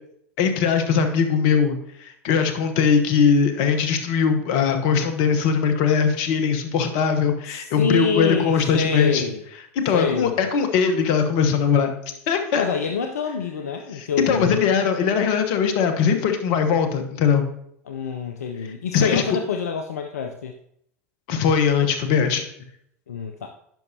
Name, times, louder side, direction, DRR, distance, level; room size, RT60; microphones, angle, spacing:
voice 1, 0.4-9.3 9.7-11.9 12.3-12.7 13.9-17.4 18.9-19.2 21.3-22.5, left 6 dB, 55° left, 7 dB, 1.1 m, -20 dB
voice 2, 7.5-9.4 9.9-10.4 12.5-14.6 17.9-20.5 23.1-23.5, left 5 dB, 80° left, 5 dB, 0.5 m, -26 dB
10.5 x 5.5 x 2.8 m, 0.73 s
hypercardioid pair, 80°, 8 cm